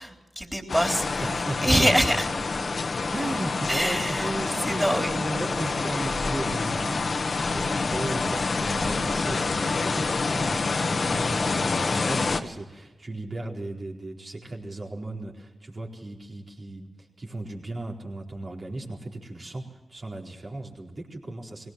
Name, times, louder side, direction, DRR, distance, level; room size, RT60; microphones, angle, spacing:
voice 1, 0.0-1.3 1.6-2.3 3.7-5.1, equal, 5° right, 3 dB, 3.6 m, -25 dB
sound 1, 0.7-12.4, left 3 dB, 60° left, 1.4 m, -27 dB
voice 2, 1.2-1.7 3.1-21.7, right 2 dB, 50° right, 0 dB, 4.3 m, -36 dB
20.5 x 17.5 x 7.7 m, 1.1 s
cardioid pair, 40°, 0 cm